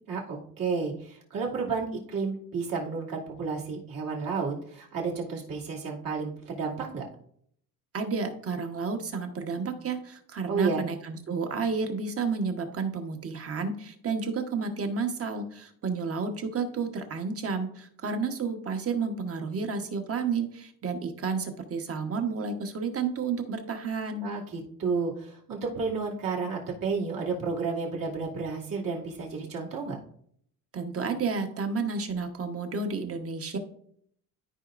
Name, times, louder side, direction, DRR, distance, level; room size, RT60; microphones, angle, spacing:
voice 1, 0.1-7.1 10.5-10.8 24.2-30.0, right 4 dB, 60° right, -4 dB, 2.5 m, -31 dB
voice 2, 7.9-24.3 30.7-33.6, right 5 dB, 40° right, 6 dB, 1.2 m, -31 dB
13.5 x 4.9 x 2.5 m, 0.65 s
cardioid pair, 145°, 37 cm